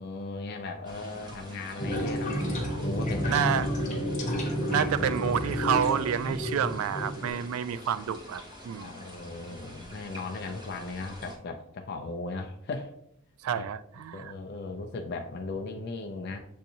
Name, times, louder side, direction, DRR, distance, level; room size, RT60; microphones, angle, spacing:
voice 1, 0.0-2.4 2.7-3.4 4.8-4.9 8.8-12.9 13.5-13.6 14.1-16.4, left 3 dB, 50° left, 3 dB, 0.4 m, -37 dB
sound 1, 0.8-11.4, left 1 dB, 20° right, 1.0 m, -47 dB
sound 2, 1.8-7.3, equal, 35° left, 1.0 m, -30 dB
voice 2, 3.3-3.7 4.7-8.9 13.4-14.3, right 8 dB, 85° right, 16 dB, 0.3 m, -29 dB
7.3 x 2.6 x 2.7 m, 0.74 s
head